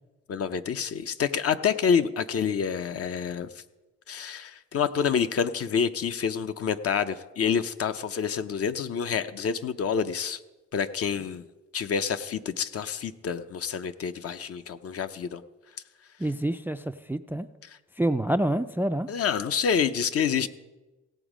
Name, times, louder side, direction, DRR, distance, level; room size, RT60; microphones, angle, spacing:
voice 1, 0.3-3.5 4.1-10.4 10.7-11.4 11.7-15.4 19.1-20.5, left 7 dB, 50° left, 11 dB, 0.7 m, -27 dB
voice 2, 16.2-17.5 18.0-19.1, right 1 dB, 5° right, 11 dB, 0.3 m, -27 dB
17.0 x 7.2 x 5.0 m, 1.1 s
cardioid pair, 90°, 30 cm